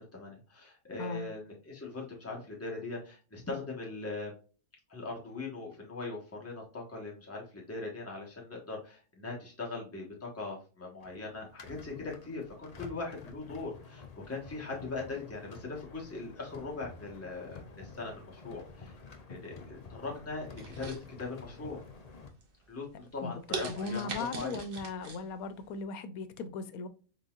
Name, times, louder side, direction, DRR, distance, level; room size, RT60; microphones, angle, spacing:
voice 1, 0.0-4.3 4.9-18.9 19.3-20.9 21.2-21.8 22.7-24.6, left 3 dB, 10° left, 1.1 m, -40 dB
sound 1, 11.0-22.3, left 4 dB, 50° left, 0.4 m, -49 dB
sound 2, 20.6-21.6 22.0-22.4 22.9-23.0 23.5-25.2 25.6-25.7, right 3 dB, 45° right, 0.9 m, -40 dB
voice 2, 23.7-26.9, left 4 dB, 80° left, 1.1 m, -37 dB
4.0 x 3.7 x 2.4 m
omnidirectional pair, 1.5 m